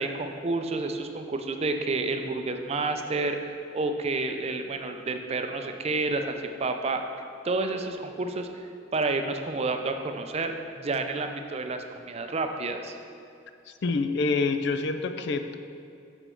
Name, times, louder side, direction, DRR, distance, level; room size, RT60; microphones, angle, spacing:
voice 1, 0.0-7.0 7.4-8.7 8.9-13.0, right 3 dB, 35° right, 6 dB, 0.5 m, -30 dB
voice 2, 13.8-15.6, left 3 dB, 60° left, 9 dB, 0.4 m, -26 dB
6.7 x 6.2 x 4.5 m, 2.5 s
head